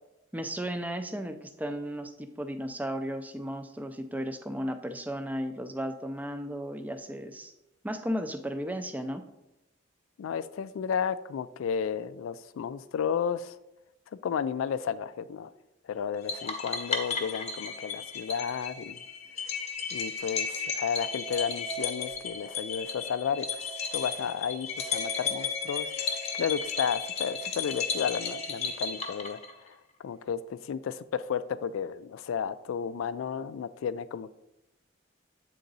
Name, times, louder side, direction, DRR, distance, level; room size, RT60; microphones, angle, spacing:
voice 1, 0.3-7.5 7.8-9.2, equal, 10° right, 8 dB, 0.4 m, -35 dB
voice 2, 10.2-13.5 14.2-15.5 15.9-19.0 19.9-29.4 30.0-34.3, left 7 dB, 85° left, 15 dB, 0.3 m, -33 dB
sound 1, 16.3-29.7, left 5 dB, 35° left, 0.7 m, -34 dB
8.2 x 3.8 x 3.9 m, 0.91 s
head